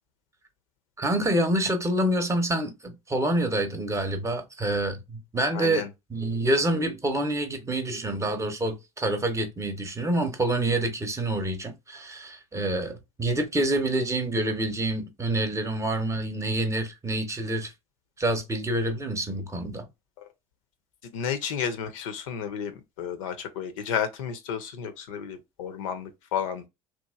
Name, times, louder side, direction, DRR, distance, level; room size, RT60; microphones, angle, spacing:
voice 1, 1.0-5.8 6.1-17.7 18.2-19.9, right 1 dB, 15° right, 0.8 m, -27 dB
voice 2, 5.5-5.9 20.2-20.3 21.1-26.6, left 8 dB, 70° left, 0.6 m, -32 dB
2.9 x 2.3 x 2.3 m
hypercardioid pair, 70°, 17 cm